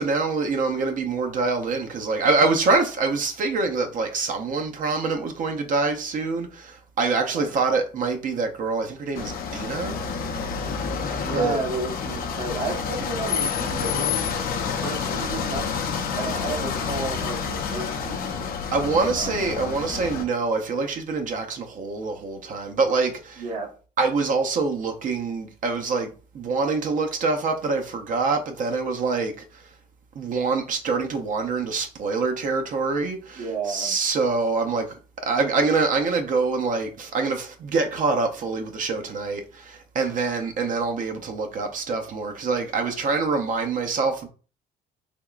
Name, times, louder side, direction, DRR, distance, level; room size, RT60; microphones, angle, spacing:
voice 1, 0.0-10.0 11.3-11.6 18.7-23.4 24.0-26.1 26.3-29.4 30.2-34.9 35.2-44.3, right 4 dB, 50° right, 0.6 m, -25 dB
sound 1, 9.1-20.2, left 6 dB, 60° left, 0.6 m, -29 dB
voice 2, 11.2-14.3 14.8-15.7 16.1-18.4 19.0-19.3 23.4-23.7 33.4-33.9, right 3 dB, 75° right, 1.0 m, -32 dB
3.5 x 2.8 x 2.3 m
cardioid pair, 110°, 17 cm